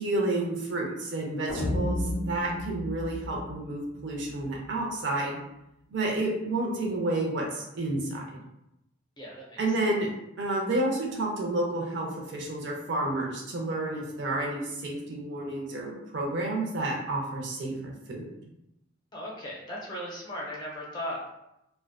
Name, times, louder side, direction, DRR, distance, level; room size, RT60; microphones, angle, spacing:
voice 1, 0.0-5.4 5.9-8.4 9.6-10.1 10.4-18.3, right 2 dB, 65° right, -1 dB, 0.6 m, -30 dB
sound 1, 1.5-4.6, left 1 dB, 85° left, 0.5 m, -32 dB
voice 2, 9.2-9.6 19.1-21.3, equal, 20° left, -4 dB, 0.6 m, -37 dB
2.6 x 2.1 x 2.2 m, 0.85 s
head